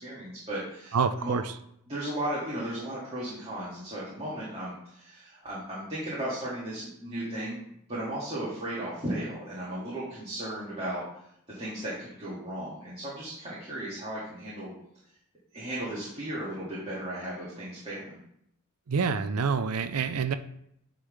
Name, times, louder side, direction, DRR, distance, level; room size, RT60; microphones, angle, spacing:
voice 1, 0.0-1.3 1.9-11.0 11.6-14.7 15.5-18.2, right 1 dB, 30° right, -9 dB, 2.1 m, -35 dB
voice 2, 0.9-1.5 18.9-20.4, right 5 dB, 75° right, 10 dB, 0.5 m, -27 dB
9.3 x 3.9 x 3.3 m, 0.73 s
head